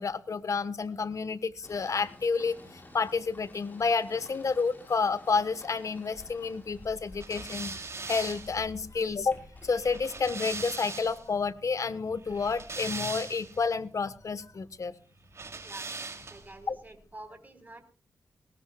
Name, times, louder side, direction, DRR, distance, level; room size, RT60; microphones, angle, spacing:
voice 1, 0.0-14.9 16.7-16.8, left 4 dB, 60° left, 14 dB, 1.3 m, -30 dB
rain on the window open close, 1.6-10.5, left 1 dB, 30° left, 6.9 m, -53 dB
sound 1, 7.2-11.3 12.2-13.7 15.3-16.6, right 3 dB, 45° right, 3.1 m, -40 dB
voice 2, 16.3-17.8, right 2 dB, 25° right, 7 dB, 4.5 m, -47 dB
21.0 x 19.0 x 2.4 m, 0.35 s
cardioid pair, 60°, 6 cm